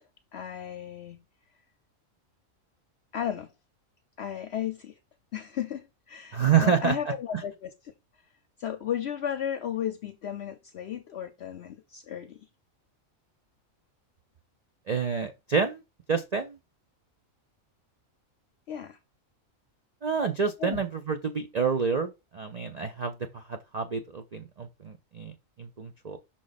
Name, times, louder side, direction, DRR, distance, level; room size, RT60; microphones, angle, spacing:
voice 1, 0.3-1.2 3.1-3.5 4.2-5.0 5.3-7.7 8.6-12.5 18.7-19.0 20.6-20.8, left 9 dB, 60° left, 0.8 m, -34 dB
voice 2, 6.3-7.0 14.9-15.8 16.1-16.6 20.0-26.2, right 6 dB, 45° right, 0.5 m, -28 dB
6.2 x 3.8 x 4.0 m
omnidirectional pair, 1.4 m